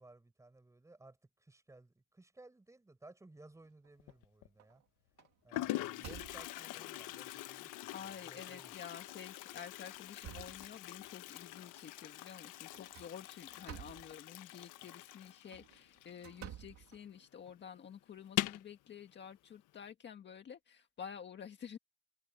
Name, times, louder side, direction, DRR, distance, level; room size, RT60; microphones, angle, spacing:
voice 1, 0.0-4.8 5.4-8.7, right 2 dB, 10° right, 6.7 m, -59 dB
sound 1, 3.6-4.1 4.6-4.8 5.2-6.8 7.5-7.6 8.0-8.1 9.0-9.3 9.7-11.2 12.7-14.2 15.3-17.5, right 12 dB, 60° right, 2.5 m, -53 dB
Toilet flush, 4.0-4.5 5.2-5.3 5.5-16.8 17.1-17.2 17.5-17.6 18.2-18.7, left 16 dB, 90° left, 1.4 m, -43 dB
voice 2, 7.9-21.8, left 8 dB, 35° left, 1.7 m, -50 dB
cardioid pair, 160°, 30 cm